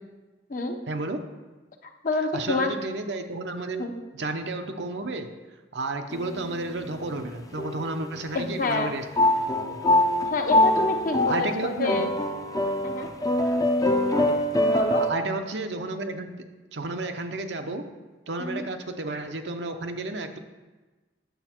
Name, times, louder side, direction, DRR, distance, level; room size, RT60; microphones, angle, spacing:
voice 1, 0.9-1.2 2.3-3.9 4.1-5.3 5.7-9.0 9.5-9.8 11.3-12.1 15.0-16.4 16.7-17.8 18.3-20.4, right 2 dB, 80° right, 5 dB, 0.8 m, -32 dB
voice 2, 2.0-2.7 3.8-3.9 8.3-8.9 10.3-12.1 12.8-13.1 14.6-15.1 18.4-18.6, left 3 dB, 50° left, 4 dB, 0.9 m, -28 dB
sound 1, 6.1-6.9 7.6-8.2 9.2-15.1, left 1 dB, 20° left, 0.6 m, -24 dB
9.4 x 7.1 x 4.4 m, 1.2 s
head